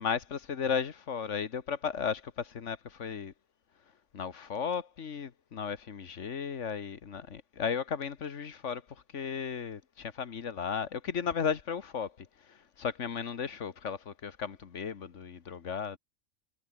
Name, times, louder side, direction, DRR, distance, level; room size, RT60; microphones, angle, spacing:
voice 1, 0.0-3.3 4.1-16.0, left 6 dB, 60° left, 1.6 m, -35 dB
omnidirectional pair, 1.4 m